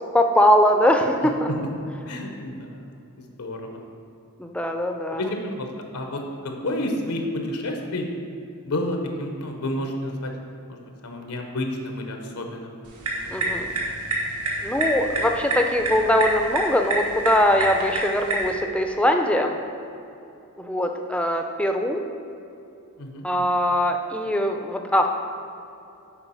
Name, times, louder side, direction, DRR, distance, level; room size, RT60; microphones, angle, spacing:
voice 1, 0.1-1.5 4.4-5.2 13.3-13.7 14.6-19.6 20.6-22.0 23.2-25.1, left 1 dB, 5° left, 4 dB, 0.4 m, -21 dB
voice 2, 2.1-2.9 3.2-3.6 5.2-5.7 5.9-8.1 8.6-10.3 10.7-12.7 13.4-13.5 23.0-23.5, left 1 dB, 85° left, 3 dB, 0.9 m, -30 dB
sound 1, 12.8-18.5, right 2 dB, 85° right, 1.4 m, -28 dB
7.0 x 4.7 x 5.6 m, 2.8 s
head